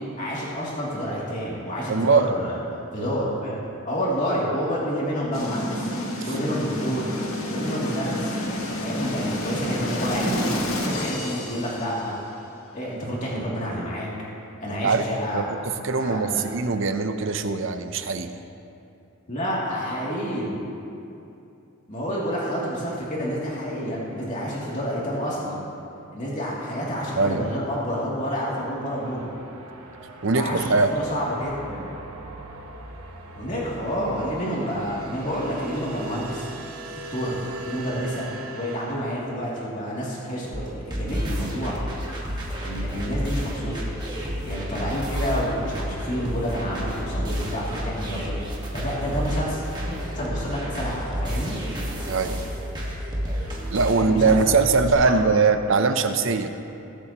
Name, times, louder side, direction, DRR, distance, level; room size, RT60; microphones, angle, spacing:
voice 1, 0.0-2.6 2.9-3.6 3.8-5.9 6.2-7.1 7.5-8.4 8.7-12.1 12.7-14.1 14.6-15.5 15.9-16.4 19.3-20.6 21.9-25.6 26.1-29.3 30.3-31.9 33.3-36.5 37.1-37.4 37.6-38.3 38.5-41.8 42.6-43.8 44.4-49.6 50.1-51.6 53.9-54.5 55.0-55.2, equal, 35° left, -6 dB, 2.7 m, -29 dB
voice 2, 1.9-2.2 14.7-15.1 15.3-15.4 15.8-18.3 27.2-27.5 30.2-30.9 52.1-52.4 53.7-56.5, right 4 dB, 60° right, 8 dB, 0.7 m, -21 dB
Drum Roll, 5.3-12.2, left 1 dB, 75° left, 1.6 m, -29 dB
sound 1, 28.5-38.9, right 2 dB, 85° right, 1.1 m, -41 dB
sound 2, 40.5-54.9, equal, 20° right, 1.5 m, -30 dB
21.5 x 8.1 x 3.0 m, 2.7 s
head